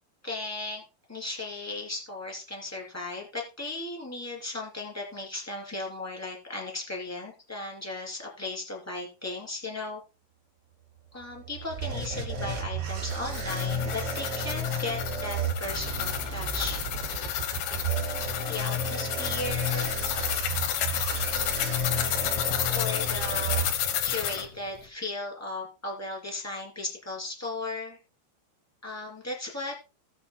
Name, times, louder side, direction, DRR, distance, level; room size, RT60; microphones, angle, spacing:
voice 1, 0.2-0.8 1.1-10.0 11.1-16.8 18.5-20.0 22.7-28.0 28.8-29.7, left 2 dB, 5° left, -1 dB, 2.1 m, -36 dB
sound 1, 11.2-24.2, right 2 dB, 75° right, 4.9 m, -32 dB
sound 2, 13.1-24.5, left 10 dB, 75° left, 2.0 m, -31 dB
19.0 x 7.5 x 2.2 m, 0.31 s
omnidirectional pair, 5.2 m